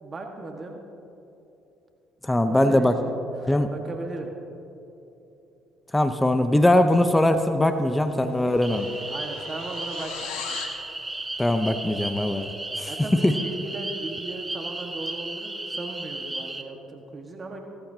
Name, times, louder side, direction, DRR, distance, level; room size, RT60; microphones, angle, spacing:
voice 1, 0.0-0.8 2.4-4.3 9.1-10.6 12.9-17.6, right 2 dB, 35° right, 2 dB, 1.6 m, -37 dB
voice 2, 2.2-3.0 3.5-3.7 5.9-8.9 11.4-13.3, left 1 dB, 10° left, 9 dB, 0.8 m, -21 dB
sound 1, 7.6-10.8, left 7 dB, 75° left, 1.2 m, -39 dB
sound 2, 8.6-16.6, right 2 dB, 15° right, 1.0 m, -35 dB
17.5 x 14.5 x 2.9 m, 2.9 s
hypercardioid pair, 60°, 0 cm